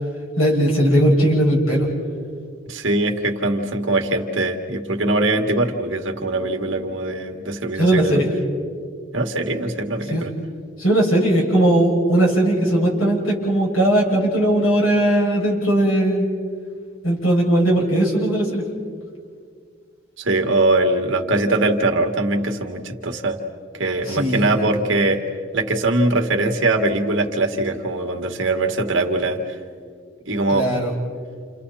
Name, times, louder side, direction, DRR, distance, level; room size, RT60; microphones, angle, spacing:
voice 1, 0.4-1.9 7.8-8.3 10.1-10.2 10.8-16.3 17.0-18.6 24.1-24.5 30.5-30.9, right 1 dB, 90° left, -2 dB, 7.1 m, -18 dB
voice 2, 2.7-8.2 9.1-10.3 20.2-23.4 23.7-25.2 25.5-29.5 30.3-30.7, right 2 dB, 65° right, 3 dB, 2.2 m, -21 dB
29.5 x 29.5 x 4.3 m, 2.1 s
head